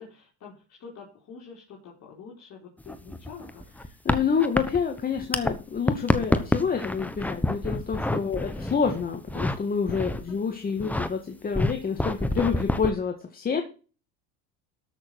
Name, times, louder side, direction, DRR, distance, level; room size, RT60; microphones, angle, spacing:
voice 1, 0.0-3.6 8.2-8.6 10.3-10.4, left 5 dB, 50° left, -3 dB, 4.1 m, -46 dB
sound 1, 2.8-5.5 5.8-9.6 9.9-10.3 10.7-11.1 11.5-12.9, left 1 dB, 5° left, 1.1 m, -27 dB
voice 2, 4.1-13.6, left 6 dB, 25° left, 4 dB, 1.8 m, -28 dB
13.5 x 6.6 x 4.7 m, 0.35 s
supercardioid pair, 115°, 35 cm